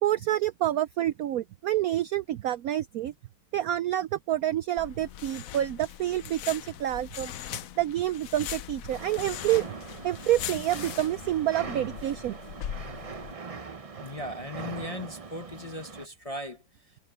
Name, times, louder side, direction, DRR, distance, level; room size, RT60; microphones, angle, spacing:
voice 1, 0.0-3.1 3.5-7.3 7.8-9.7 10.0-12.4, right 13 dB, 75° right, 0.8 m, -28 dB
sound 1, 4.8-13.3, left 11 dB, 65° left, 0.9 m, -40 dB
sound 2, 8.9-16.1, right 4 dB, 45° right, 0.4 m, -41 dB
voice 2, 14.0-17.0, left 1 dB, 25° left, 0.8 m, -38 dB
omnidirectional pair, 2.0 m